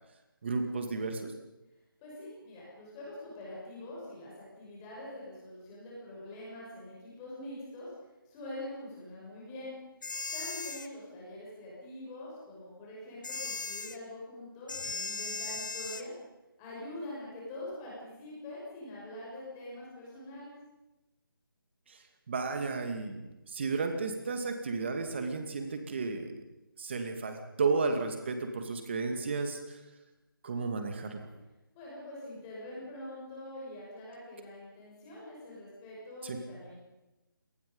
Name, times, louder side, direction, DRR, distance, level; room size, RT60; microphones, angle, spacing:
voice 1, 0.4-1.3 21.9-26.3 26.8-29.8 30.4-31.3 36.2-36.4, right 4 dB, 30° right, 6 dB, 2.4 m, -33 dB
voice 2, 2.0-7.9 8.3-9.7 10.3-16.1 16.6-20.5 31.7-36.8, left 1 dB, 10° left, -5 dB, 6.3 m, -44 dB
sound 1, 10.0-10.9 13.2-14.0 14.7-16.1, left 4 dB, 60° left, 1.1 m, -37 dB
25.0 x 19.5 x 5.5 m, 1.0 s
figure-of-eight pair, 170°, 12 cm